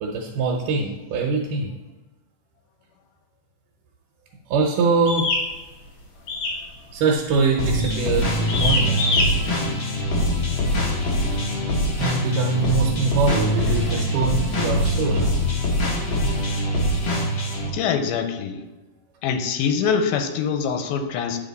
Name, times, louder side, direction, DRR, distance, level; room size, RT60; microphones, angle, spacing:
voice 1, 0.0-1.7 4.5-5.3 6.9-9.3 12.0-15.3, right 4 dB, 85° right, -1 dB, 2.4 m, -23 dB
sound 1, 5.1-5.4 6.3-6.6 6.9-7.3 7.8-8.0 8.5-9.3, left 3 dB, 55° left, 1.8 m, -23 dB
sound 2, 7.6-17.7, equal, 70° left, 0.9 m, -23 dB
voice 2, 17.7-18.6 19.2-21.4, left 6 dB, 90° left, 7 dB, 2.2 m, -24 dB
9.5 x 3.9 x 4.0 m, 1.1 s
omnidirectional pair, 3.7 m